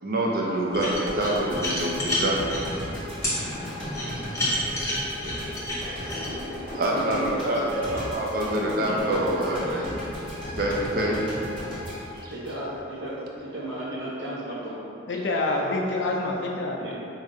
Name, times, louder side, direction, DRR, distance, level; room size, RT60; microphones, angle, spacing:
voice 1, 0.0-2.4 3.4-3.5 4.8-5.2 6.7-9.8 10.5-11.4 12.2-12.3, right 1 dB, 50° right, -2 dB, 0.4 m, -26 dB
sound 1, 0.7-2.6 3.2-3.4 3.9-6.3, left 1 dB, 15° left, 0.6 m, -29 dB
sound 2, 0.9-13.1, left 1 dB, 25° right, 1.0 m, -35 dB
voice 2, 6.9-8.0 8.4-8.5 8.8-9.9 12.3-14.8 16.8-16.9, right 1 dB, 70° right, -7 dB, 0.9 m, -34 dB
voice 3, 15.1-16.9, left 2 dB, 65° left, 0 dB, 0.4 m, -27 dB
4.1 x 2.6 x 2.6 m, 2.7 s
head